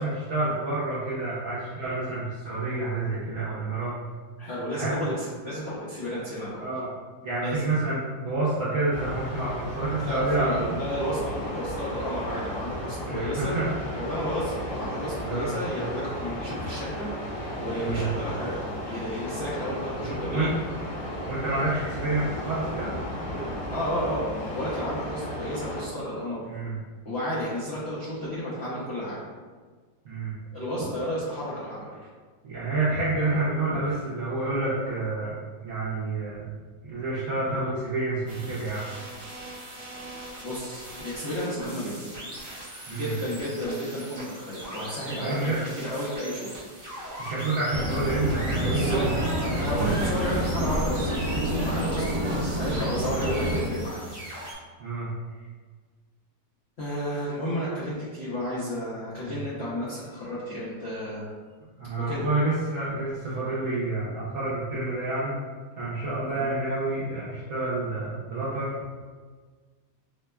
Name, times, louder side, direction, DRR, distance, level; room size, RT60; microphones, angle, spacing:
voice 1, 0.0-4.0 4.7-5.0 6.6-6.9 7.2-10.8 13.1-13.7 15.2-15.6 17.8-18.1 20.0-20.5 21.3-23.0 26.5-26.8 30.0-30.3 32.4-35.4 35.6-36.5 36.9-38.9 42.9-43.1 45.2-45.6 47.2-49.2 49.7-49.9 54.8-55.1 59.2-59.3 61.8-65.4 65.8-68.7, right 2 dB, 70° right, -8 dB, 0.8 m, -28 dB
voice 2, 4.4-6.7 7.4-7.7 9.9-13.5 13.8-17.1 17.6-18.6 18.8-20.5 23.7-26.5 27.0-29.2 30.5-32.0 40.4-42.2 42.9-46.5 48.6-49.1 49.4-54.0 56.8-61.3 62.0-62.3 66.3-66.5, equal, 65° left, -9 dB, 0.6 m, -32 dB
sound 1, 8.9-25.8, equal, 85° left, 2.5 m, -34 dB
sound 2, 38.3-54.5, right 1 dB, 15° right, 0.7 m, -41 dB
sound 3, 47.7-53.7, equal, 50° right, 1.0 m, -28 dB
4.4 x 2.1 x 2.2 m, 1.5 s
omnidirectional pair, 2.0 m